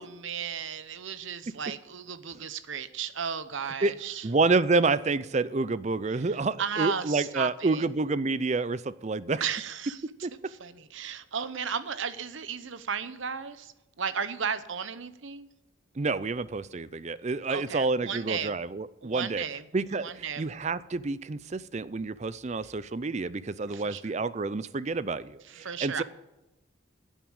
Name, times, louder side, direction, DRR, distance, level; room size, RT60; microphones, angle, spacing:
voice 1, 0.0-4.3 6.1-7.9 9.4-10.0 10.5-15.5 17.5-18.5 19.0-19.7 19.9-20.5 23.7-24.2 25.5-26.0, right 7 dB, 70° right, 13 dB, 0.9 m, -35 dB
voice 2, 4.2-9.4 10.2-10.3 16.0-19.4 19.7-20.1 20.4-26.0, right 3 dB, 35° right, 17 dB, 0.5 m, -28 dB
11.0 x 9.0 x 8.8 m, 0.97 s
head